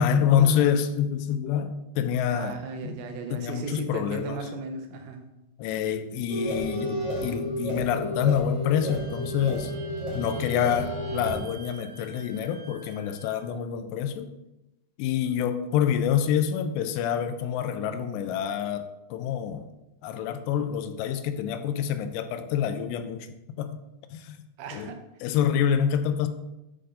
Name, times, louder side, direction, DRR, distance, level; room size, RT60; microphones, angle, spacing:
voice 1, 0.0-2.6 2.8-3.0 3.3-4.4 5.6-9.7 10.1-14.3 15.0-19.7 20.0-23.3 23.6-23.8 24.1-24.4 24.7-24.9 25.2-26.3, left 8 dB, 85° left, 9 dB, 2.7 m, -27 dB
voice 2, 2.3-5.2 24.6-25.0, right 5 dB, 90° right, 6 dB, 3.1 m, -36 dB
sound 1, 6.3-11.4, equal, 45° right, 2.2 m, -32 dB
Wind instrument woodwind instrument, 8.8-13.4, right 4 dB, 75° right, 2.0 m, -49 dB
8.7 x 3.9 x 3.7 m, 0.92 s
omnidirectional pair, 4.9 m